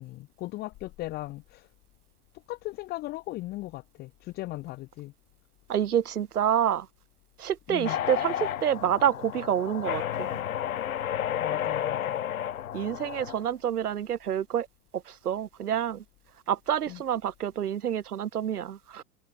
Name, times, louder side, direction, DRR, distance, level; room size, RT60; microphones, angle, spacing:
voice 1, 0.0-1.7 2.5-5.1 7.7-8.0 11.4-12.2 16.9-17.0, left 18 dB, 20° left, 2.8 m, -38 dB
voice 2, 5.7-6.9 7.4-10.4 12.7-14.7 14.9-16.0 16.5-19.0, right 9 dB, 75° right, 3.0 m, -28 dB
sound 1, 7.8-13.4, left 10 dB, 60° left, 6.7 m, -31 dB
hypercardioid pair, 160°, 46 cm